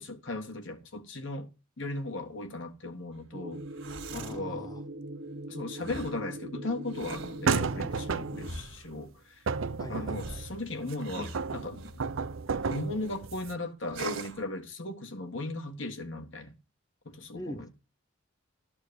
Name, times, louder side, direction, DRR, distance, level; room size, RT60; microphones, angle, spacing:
voice 1, 0.0-1.5 1.8-3.6 4.1-4.7 5.5-9.5 9.9-12.1 12.6-16.5 17.0-17.7, left 2 dB, 65° left, 1.7 m, -37 dB
sound 1, 3.3-8.5, right 1 dB, 50° right, 0.9 m, -41 dB
sound 2, 3.6-4.4 5.8-6.2 6.9-7.4 8.3-8.9 10.1-12.0 12.6-13.2 13.9-14.4, right 3 dB, 70° right, 1.6 m, -42 dB
voice 2, 4.1-4.8 9.8-10.4 17.3-17.7, equal, 20° left, 1.0 m, -43 dB
sound 3, 7.5-8.6 9.5-10.9 11.3-13.6, right 5 dB, 85° right, 0.6 m, -32 dB
13.0 x 4.4 x 8.2 m
head